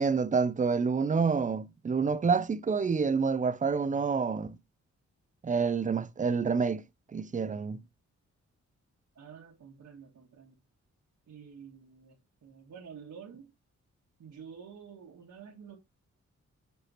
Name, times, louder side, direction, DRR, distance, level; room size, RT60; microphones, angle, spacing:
voice 1, 0.0-4.6 5.4-6.9 7.1-7.8, right 5 dB, 25° right, 0.5 m, -28 dB
voice 2, 9.1-10.6 11.3-13.5 14.2-15.8, right 7 dB, 75° right, 1.5 m, -49 dB
7.7 x 4.7 x 2.9 m
wide cardioid pair, 135°, 29 cm